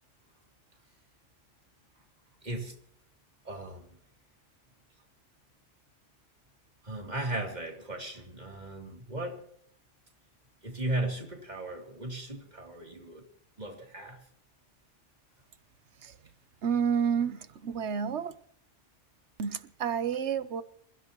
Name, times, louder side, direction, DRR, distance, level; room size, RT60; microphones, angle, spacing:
voice 1, 3.4-3.9 6.8-9.4 10.6-13.2 13.6-14.2, right 1 dB, 35° right, 3.3 m, -36 dB
voice 2, 16.6-18.3 19.4-20.6, right 7 dB, 65° right, 1.1 m, -30 dB
27.5 x 15.5 x 3.0 m
omnidirectional pair, 1.3 m